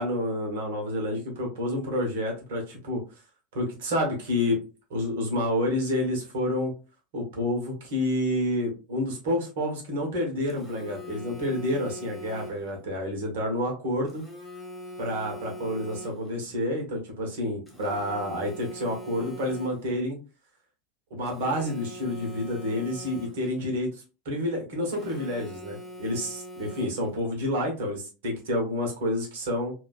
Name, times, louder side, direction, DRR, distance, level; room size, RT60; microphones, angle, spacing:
voice 1, 0.0-3.0 3.5-4.6 4.9-6.7 7.1-14.2 15.0-20.2 21.1-29.7, left 1 dB, 60° right, 1 dB, 1.0 m, -29 dB
Telephone, 10.5-12.8 14.1-16.4 17.7-20.0 21.3-23.6 24.8-27.2, equal, ahead, 0.7 m, -42 dB
2.6 x 2.2 x 2.3 m, 0.32 s
figure-of-eight pair, 80°, 0 cm